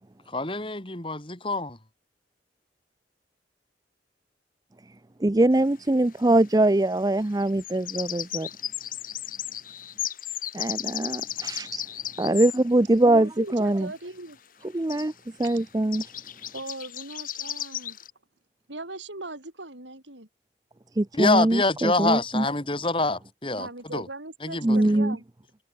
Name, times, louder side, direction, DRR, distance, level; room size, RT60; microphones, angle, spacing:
voice 1, 0.3-1.8 21.1-24.1 24.4-24.8, left 2 dB, 30° left, 3.0 m, -26 dB
voice 2, 5.2-8.5 10.5-11.8 12.2-13.9 14.7-15.1 15.4-16.0 21.0-22.5 24.6-25.2, right 1 dB, 20° right, 0.5 m, -22 dB
sound 1, 5.5-5.6 7.4-12.6 14.3-14.4 14.6-14.7 14.9-15.1 15.4-15.6 15.9-18.1, left 11 dB, 50° left, 2.2 m, -35 dB
voice 3, 13.0-14.4 16.5-18.0 18.7-20.3 23.6-25.2, right 2 dB, 90° right, 6.3 m, -39 dB
head